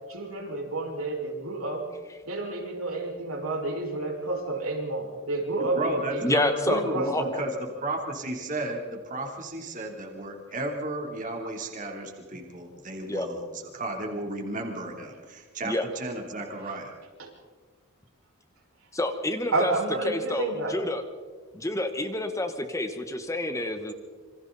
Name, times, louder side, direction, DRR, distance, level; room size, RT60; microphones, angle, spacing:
voice 1, 0.1-1.9 2.3-7.3 17.2-17.3 19.5-20.8, right 2 dB, 80° right, 0 dB, 5.3 m, -30 dB
voice 2, 5.6-6.4 6.7-16.9, right 1 dB, 35° right, 1 dB, 3.3 m, -34 dB
voice 3, 6.2-7.4 13.1-13.3 15.6-15.9 18.9-19.7 20.0-21.0 21.5-23.9, left 1 dB, 15° left, 8 dB, 1.1 m, -28 dB
27.5 x 25.5 x 4.1 m, 1.5 s
head